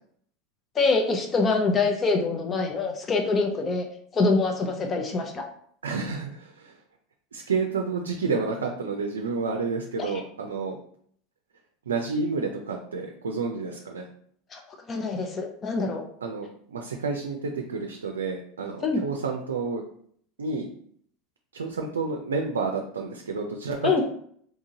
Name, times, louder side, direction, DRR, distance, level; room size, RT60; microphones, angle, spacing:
voice 1, 0.7-3.8 4.1-5.4 10.0-10.2 14.5-14.6 14.9-16.0 18.8-19.0 23.8-24.0, left 3 dB, 30° left, 3 dB, 0.8 m, -25 dB
voice 2, 5.8-6.8 7.3-10.8 11.9-14.1 16.2-19.8 20.4-20.7 21.5-24.0, right 4 dB, 90° right, 3 dB, 0.4 m, -30 dB
3.7 x 2.9 x 2.7 m, 0.62 s
hypercardioid pair, 90°, 0 cm